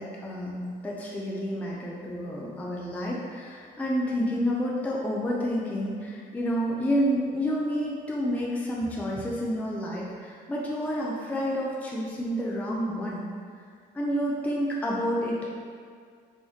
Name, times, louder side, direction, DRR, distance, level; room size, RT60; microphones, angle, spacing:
voice 1, 0.0-13.2 13.9-15.5, equal, 10° left, -4 dB, 0.4 m, -29 dB
3.7 x 3.0 x 2.7 m, 2.1 s
cardioid pair, 110°, 17 cm